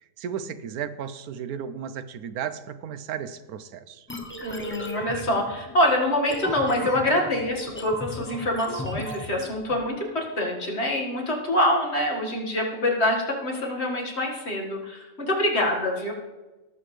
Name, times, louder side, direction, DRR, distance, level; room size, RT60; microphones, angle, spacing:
voice 1, 0.2-4.1, right 8 dB, 90° right, 13 dB, 1.2 m, -34 dB
sound 1, 4.1-9.8, right 1 dB, 10° left, 0.7 m, -36 dB
voice 2, 4.4-16.1, left 1 dB, 45° left, -1 dB, 2.1 m, -25 dB
18.5 x 7.8 x 3.3 m, 1.1 s
omnidirectional pair, 1.5 m